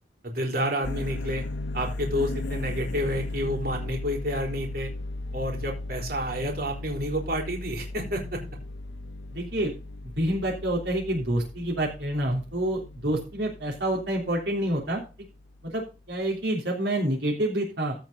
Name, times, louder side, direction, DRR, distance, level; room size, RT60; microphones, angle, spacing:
voice 1, 0.2-1.4 1.7-4.9 5.3-8.4, equal, 55° right, 1 dB, 4.1 m, -29 dB
sound 1, 0.8-16.0, left 2 dB, 80° left, 0.9 m, -37 dB
voice 2, 9.3-9.7 10.2-15.0 15.6-18.0, right 1 dB, 70° right, -2 dB, 3.4 m, -28 dB
15.5 x 5.8 x 3.9 m, 0.31 s
head